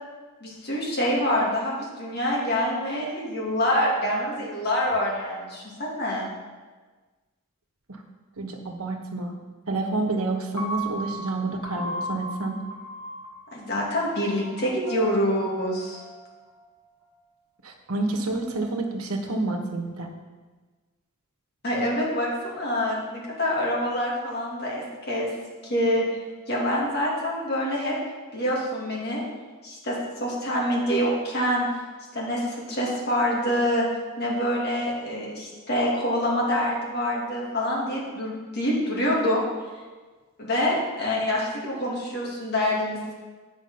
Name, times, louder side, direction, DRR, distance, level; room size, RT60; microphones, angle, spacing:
voice 1, 0.4-6.3 13.5-16.0 21.6-25.3 25.6-26.0 26.5-27.9 28.3-29.2 29.6-31.7 32.1-33.9 34.2-39.4 40.4-43.1, equal, 45° left, -4 dB, 2.3 m, -26 dB
voice 2, 8.4-9.3 9.7-12.6 17.6-20.1, right 2 dB, 80° right, 3 dB, 1.3 m, -29 dB
Piano, 10.6-16.7, right 1 dB, 70° left, 1.7 m, -37 dB
9.4 x 6.2 x 5.6 m, 1.3 s
head